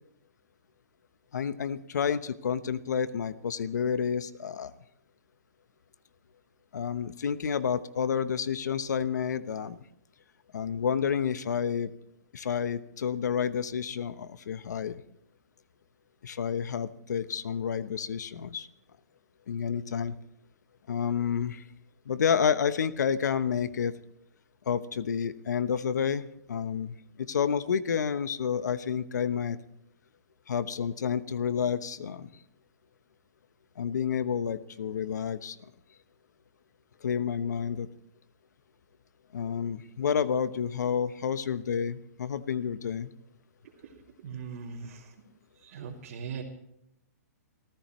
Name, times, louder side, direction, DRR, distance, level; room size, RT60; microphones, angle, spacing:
voice 1, 1.3-4.7 6.7-9.8 10.5-11.9 12.3-15.0 16.2-18.7 19.5-20.1 20.9-21.6 22.1-23.9 24.7-29.6 30.5-32.3 33.8-35.6 37.0-37.9 39.3-43.1, left 7 dB, 80° left, 14 dB, 1.0 m, -30 dB
voice 2, 44.2-45.0 45.6-46.4, right 6 dB, 55° right, -4 dB, 2.9 m, -39 dB
28.5 x 14.5 x 3.2 m, 0.77 s
hypercardioid pair, 150°, 9 cm